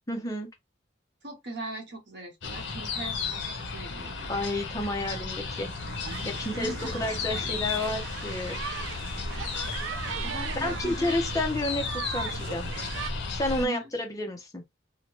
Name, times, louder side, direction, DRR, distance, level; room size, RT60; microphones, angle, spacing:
voice 1, 0.1-0.5 4.3-5.7 6.2-8.6 10.6-12.7 13.3-14.6, left 1 dB, 20° left, 0.7 m, -31 dB
voice 2, 1.2-4.3 6.5-8.0 9.2-9.5 10.2-11.1 13.6-13.9, right 1 dB, 60° right, 1.1 m, -40 dB
sound 1, 2.4-13.7, left 4 dB, 70° left, 0.7 m, -34 dB
sound 2, 5.4-13.1, right 7 dB, 80° right, 0.3 m, -39 dB
2.8 x 2.2 x 2.9 m
head